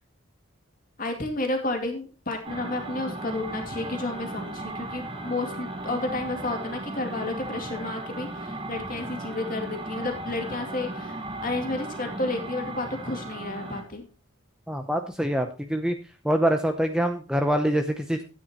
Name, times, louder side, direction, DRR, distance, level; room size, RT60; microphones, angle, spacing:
voice 1, 1.0-14.1, left 2 dB, 40° left, 4 dB, 2.4 m, -31 dB
sound 1, 2.4-13.9, right 2 dB, 25° right, 1.5 m, -36 dB
voice 2, 14.7-16.0 16.2-18.3, equal, 5° right, 6 dB, 0.7 m, -25 dB
13.0 x 9.3 x 2.9 m, 0.33 s
head